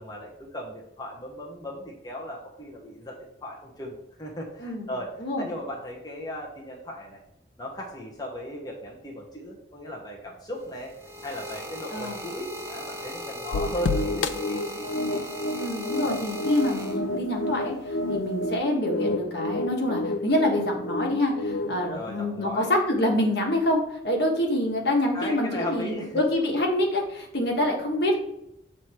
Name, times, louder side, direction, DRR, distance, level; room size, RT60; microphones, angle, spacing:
voice 1, 0.0-7.2 7.6-11.0 11.2-14.6 21.9-22.7 25.1-26.2, left 1 dB, 20° left, -2 dB, 0.9 m, -37 dB
sound 1, 10.6-17.4 18.2-18.5, equal, 15° right, 0.9 m, -38 dB
sound 2, 13.5-21.9, left 2 dB, 85° left, 0.4 m, -30 dB
voice 2, 15.6-28.2, left 1 dB, 60° left, 0 dB, 1.4 m, -26 dB
7.6 x 3.2 x 4.4 m, 0.83 s
head